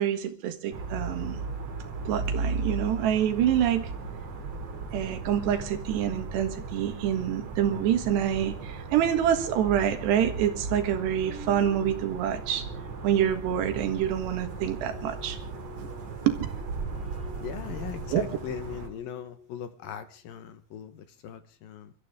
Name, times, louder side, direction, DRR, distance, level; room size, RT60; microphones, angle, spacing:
voice 1, 0.0-1.4 2.1-3.9 4.9-12.6 13.0-15.4 16.3-16.4 18.1-18.2, right 10 dB, 80° right, 8 dB, 3.7 m, -26 dB
sound 1, 0.7-18.9, right 4 dB, 45° right, 3.0 m, -36 dB
sound 2, 11.0-20.4, left 3 dB, ahead, 1.9 m, -49 dB
voice 2, 17.4-21.9, left 9 dB, 70° left, 10 dB, 2.6 m, -39 dB
29.0 x 13.5 x 3.6 m, 0.38 s
omnidirectional pair, 4.8 m